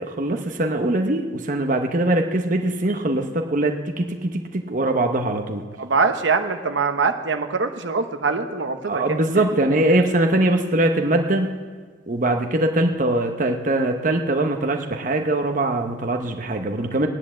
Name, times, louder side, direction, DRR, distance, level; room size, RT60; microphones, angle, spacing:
voice 1, 0.0-5.6 8.9-11.6 12.1-17.1, right 1 dB, 45° right, 4 dB, 0.9 m, -22 dB
voice 2, 5.8-9.4, right 4 dB, 70° right, 6 dB, 1.0 m, -23 dB
16.5 x 10.5 x 7.3 m, 1.6 s
head